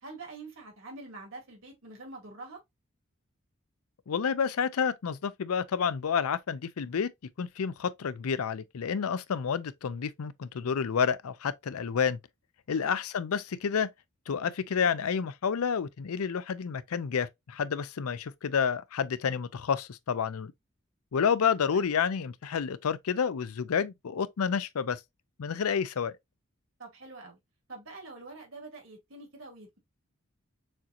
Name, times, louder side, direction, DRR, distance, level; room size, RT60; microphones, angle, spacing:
voice 1, 0.0-2.6 12.7-12.9 21.7-21.9 26.8-27.4 27.7-29.8, right 3 dB, 70° right, 2.2 m, -45 dB
voice 2, 4.1-7.1 7.4-12.2 12.7-13.9 14.3-20.5 21.1-25.0 25.4-26.1, left 6 dB, 85° left, 0.5 m, -29 dB
6.5 x 2.9 x 2.5 m
head